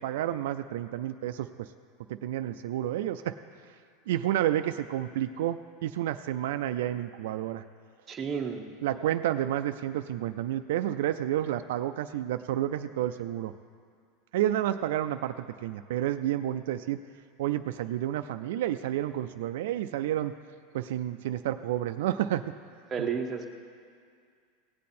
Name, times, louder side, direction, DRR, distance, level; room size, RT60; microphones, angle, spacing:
voice 1, 0.0-1.7 2.1-3.4 4.1-7.6 8.8-13.5 14.3-15.3 15.6-17.0 17.4-20.3 20.7-22.4, right 12 dB, 70° right, 9 dB, 0.3 m, -30 dB
voice 2, 8.1-8.7 22.9-23.5, right 6 dB, 20° right, 3 dB, 0.8 m, -31 dB
17.0 x 8.4 x 4.3 m, 2.2 s
supercardioid pair, 170°, 0 cm